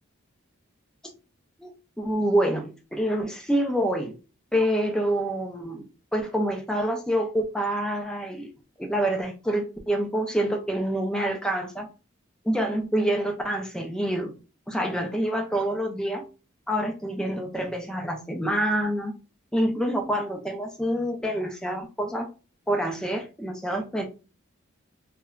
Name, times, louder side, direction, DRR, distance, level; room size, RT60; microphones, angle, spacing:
voice 1, 1.6-4.2 4.5-5.9 6.1-8.5 8.8-11.9 12.4-14.3 14.7-16.2 16.7-19.1 19.5-22.3 22.7-24.1, right 1 dB, 5° left, 3 dB, 0.3 m, -27 dB
2.8 x 2.1 x 2.4 m, 0.33 s
head